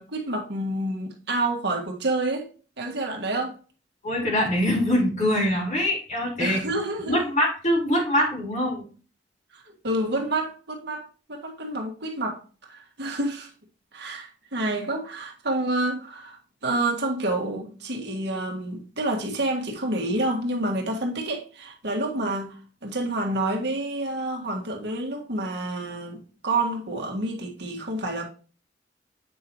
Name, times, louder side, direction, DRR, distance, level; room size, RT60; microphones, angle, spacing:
voice 1, 0.0-2.5 2.8-3.6 6.4-7.2 9.5-12.4 12.7-13.5 13.9-22.6 22.8-28.2, right 2 dB, 65° right, 1.8 m, -28 dB
voice 2, 4.0-6.6 7.1-8.8, equal, 40° left, 4.1 m, -23 dB
8.7 x 5.4 x 3.0 m
head